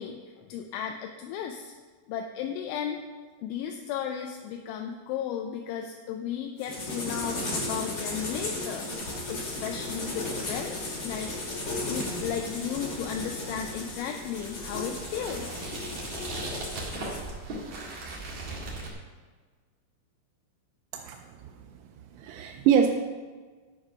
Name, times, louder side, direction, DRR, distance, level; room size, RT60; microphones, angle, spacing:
voice 1, 0.0-1.7 2.1-3.0 3.4-11.3 11.8-15.7, left 8 dB, 80° left, 3 dB, 2.8 m, -35 dB
sound 1, 6.6-17.3, left 2 dB, 45° left, 2.0 m, -35 dB
sound 2, 8.9-18.9, right 2 dB, 60° right, 1.6 m, -41 dB
voice 2, 20.9-21.5 22.2-22.9, right 8 dB, 90° right, 2 dB, 3.2 m, -25 dB
12.5 x 4.9 x 5.6 m, 1.4 s
omnidirectional pair, 5.8 m